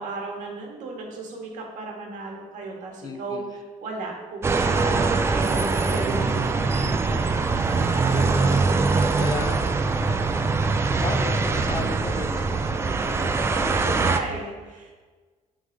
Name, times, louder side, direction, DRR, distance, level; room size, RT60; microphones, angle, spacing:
voice 1, 0.0-7.4 7.7-8.1 13.7-14.9, right 3 dB, 80° right, 0 dB, 1.7 m, -35 dB
voice 2, 3.0-3.4 6.8-7.2 7.8-9.7 10.9-14.2, left 4 dB, 30° left, 5 dB, 0.6 m, -35 dB
sound 1, 4.4-14.2, right 4 dB, 20° right, 0.4 m, -23 dB
7.9 x 3.9 x 5.3 m, 1.4 s
cardioid pair, 155°, 13 cm